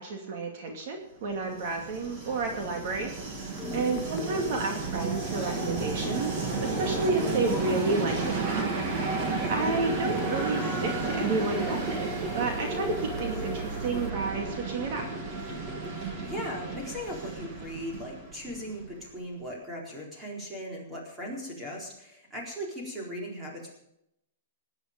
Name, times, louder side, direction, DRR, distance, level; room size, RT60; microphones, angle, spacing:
voice 1, 0.0-3.1 3.7-8.8 9.2-15.0, right 3 dB, 45° right, 3 dB, 2.5 m, -31 dB
Train, 1.3-19.1, right 3 dB, 25° right, 2.5 m, -32 dB
sound 1, 3.5-14.1, left 7 dB, 15° left, 1.2 m, -44 dB
voice 2, 15.9-23.7, equal, 10° right, -2 dB, 4.1 m, -38 dB
18.5 x 10.0 x 5.3 m, 0.79 s
supercardioid pair, 170°, 0 cm